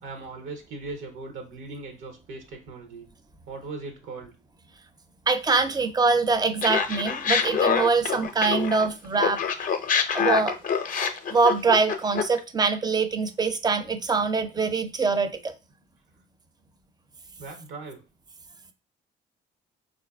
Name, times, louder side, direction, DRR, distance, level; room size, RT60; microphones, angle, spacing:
voice 1, 0.0-3.1 3.5-4.3 17.4-18.0, right 3 dB, 85° right, 0.7 m, -39 dB
voice 2, 5.3-9.4 10.1-10.6 11.3-15.5, right 4 dB, 20° right, 0.4 m, -24 dB
Laughter, 6.6-8.9 9.2-12.4, left 6 dB, 45° left, 0.4 m, -25 dB
3.9 x 2.4 x 2.3 m
cardioid pair, 90°, 20 cm